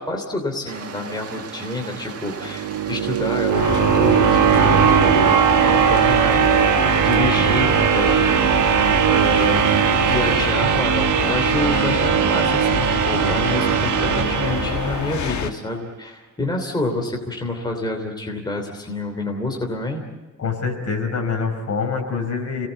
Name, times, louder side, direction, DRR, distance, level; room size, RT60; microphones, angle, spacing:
voice 1, 0.0-9.7 10.0-20.0, left 2 dB, 15° left, 2 dB, 3.1 m, -28 dB
sound 1, 0.7-10.4, right 6 dB, 50° right, 1.9 m, -36 dB
sound 2, 2.4-15.4, right 9 dB, 75° right, 1.3 m, -19 dB
sound 3, 3.5-15.5, left 7 dB, 70° left, 1.3 m, -26 dB
voice 2, 20.4-22.7, left 5 dB, 55° left, 4 dB, 4.9 m, -25 dB
28.5 x 19.5 x 8.2 m, 1.3 s
wide cardioid pair, 175°, 31 cm